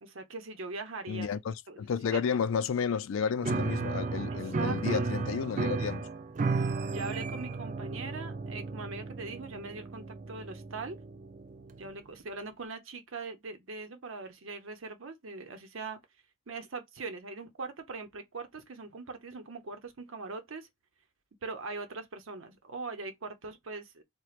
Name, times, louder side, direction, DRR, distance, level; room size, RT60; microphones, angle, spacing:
voice 1, 0.0-1.3 1.7-1.8 2.1-2.2 4.3-5.1 6.9-11.0 11.8-16.0 16.5-20.7 21.4-24.0, right 3 dB, 75° right, 0.8 m, -41 dB
voice 2, 1.1-6.1, left 6 dB, 75° left, 0.4 m, -32 dB
Piano, 3.4-11.9, right 4 dB, 40° right, 0.4 m, -34 dB
4.4 x 2.2 x 2.4 m
head